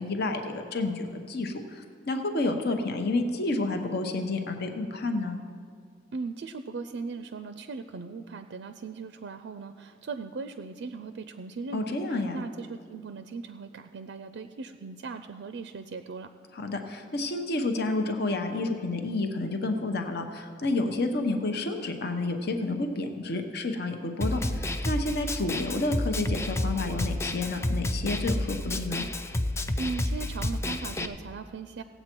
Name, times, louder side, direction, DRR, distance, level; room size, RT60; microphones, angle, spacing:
voice 1, 0.0-5.4 11.7-12.5 16.5-29.1, left 2 dB, 60° left, 5 dB, 0.9 m, -30 dB
voice 2, 6.1-16.3 29.8-31.8, right 4 dB, 70° right, 9 dB, 0.4 m, -38 dB
Snare drum, 24.2-31.1, left 1 dB, 15° left, 0.4 m, -30 dB
17.0 x 8.0 x 4.5 m, 2.2 s
head